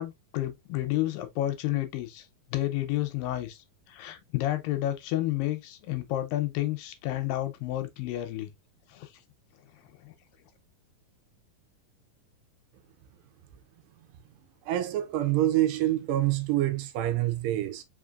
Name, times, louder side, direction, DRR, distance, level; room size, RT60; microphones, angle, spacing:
voice 1, 0.0-2.2 2.5-3.6 3.9-8.5 8.9-9.1 10.0-10.1, left 14 dB, 80° left, 2.4 m, -30 dB
voice 2, 14.7-17.8, right 14 dB, 80° right, 2.1 m, -26 dB
5.0 x 3.7 x 2.4 m
omnidirectional pair, 4.1 m